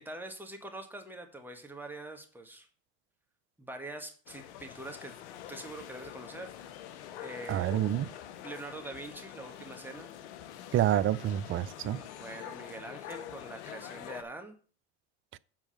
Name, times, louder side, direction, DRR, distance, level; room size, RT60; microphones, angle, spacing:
voice 1, 0.0-2.7 3.6-5.2 5.5-6.5 7.2-7.7 8.4-10.1 12.2-14.6, right 2 dB, 5° right, 2.1 m, -44 dB
sound 1, 4.3-14.2, left 11 dB, 80° left, 1.0 m, -46 dB
voice 2, 7.5-8.1 10.7-12.0 15.3-15.4, right 12 dB, 35° right, 0.5 m, -28 dB
7.7 x 4.8 x 7.3 m
hypercardioid pair, 85°, 34 cm